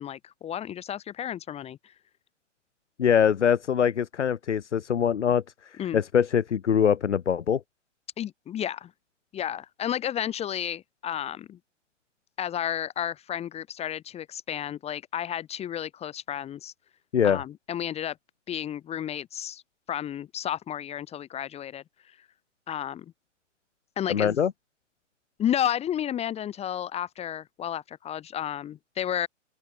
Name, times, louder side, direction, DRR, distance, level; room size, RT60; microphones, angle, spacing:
voice 1, 0.0-1.8 5.8-6.0 8.2-8.9 9.3-11.6 12.4-16.7 17.2-18.2 18.5-19.6 19.9-21.8 22.7-23.0 24.0-24.4 25.4-29.3, left 10 dB, 15° left, 1.5 m, -32 dB
voice 2, 3.0-5.4 5.9-7.6 17.1-17.4 24.1-24.5, left 8 dB, 70° left, 1.8 m, -23 dB
open air
figure-of-eight pair, 120°, 37 cm